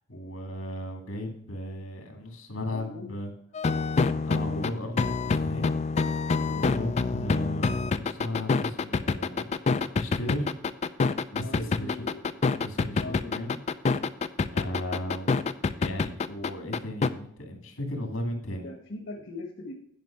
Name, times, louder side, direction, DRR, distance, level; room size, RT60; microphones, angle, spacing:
voice 1, 0.1-3.3 4.2-6.0 6.4-10.5 11.3-12.0 12.6-13.6 14.5-15.5 15.8-18.6, left 1 dB, 90° left, 3 dB, 2.0 m, -36 dB
voice 2, 2.7-3.1 11.4-12.6 12.9-13.5 18.6-19.7, left 2 dB, 65° left, 2 dB, 1.1 m, -40 dB
sound 1, 3.5-17.1, left 4 dB, 35° left, 0.4 m, -26 dB
9.4 x 5.3 x 5.7 m, 0.71 s
head